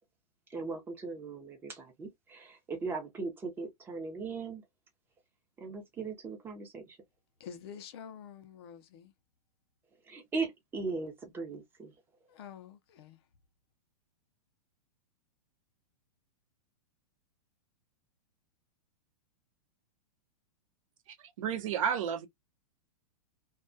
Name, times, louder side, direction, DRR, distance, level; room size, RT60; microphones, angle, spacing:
voice 1, 0.5-4.6 5.6-7.0 10.0-11.9, right 4 dB, 10° right, 0.6 m, -38 dB
voice 2, 7.4-9.1 12.3-13.2, left 8 dB, 40° left, 0.5 m, -48 dB
voice 3, 21.1-22.3, right 8 dB, 60° right, 0.7 m, -32 dB
2.2 x 2.2 x 2.5 m
hypercardioid pair, 160°, 19 cm